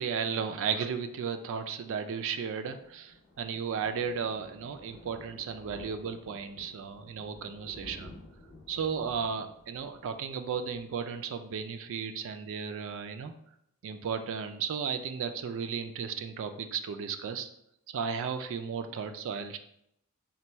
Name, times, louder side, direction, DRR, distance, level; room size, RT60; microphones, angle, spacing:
voice 1, 0.0-8.1 8.7-13.3 13.8-17.5 17.9-19.6, right 6 dB, 60° right, 8 dB, 0.3 m, -34 dB
Thunder, 2.3-11.7 12.0-12.3 12.6-12.7 12.9-13.0, left 1 dB, 45° left, 0.7 m, -53 dB
4.1 x 2.2 x 4.4 m, 0.76 s
head